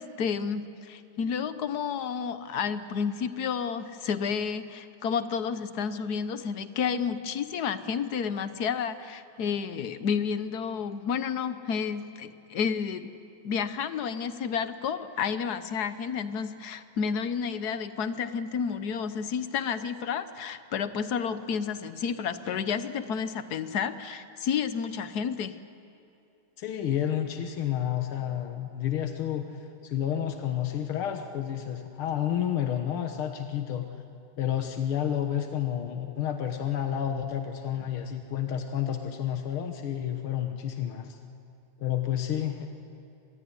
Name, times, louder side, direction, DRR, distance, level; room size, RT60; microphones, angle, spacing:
voice 1, 0.0-13.1 13.4-25.6, left 6 dB, 55° left, 12 dB, 1.4 m, -31 dB
voice 2, 26.6-29.5 29.8-33.9 34.4-41.2 41.8-42.7, left 10 dB, 80° left, 6 dB, 2.1 m, -30 dB
26.5 x 20.5 x 9.7 m, 2.7 s
omnidirectional pair, 2.3 m